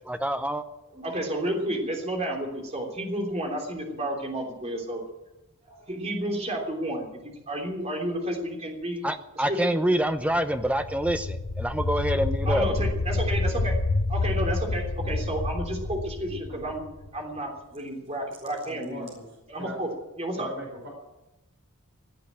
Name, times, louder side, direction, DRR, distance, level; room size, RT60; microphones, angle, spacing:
voice 1, 0.1-0.6 9.0-12.7, right 1 dB, 5° right, 9 dB, 0.7 m, -26 dB
voice 2, 0.9-5.0 5.7-9.0 9.3-9.7 12.4-13.7 14.1-16.9 17.1-19.1 19.5-19.9 20.2-20.5, right 1 dB, 30° right, 1 dB, 3.2 m, -31 dB
sound 1, 10.3-17.2, left 2 dB, 80° left, 1.0 m, -28 dB
voice 3, 18.6-19.2 19.6-19.8 20.4-20.9, right 1 dB, 50° right, -1 dB, 5.1 m, -40 dB
17.0 x 9.0 x 8.7 m, 0.97 s
head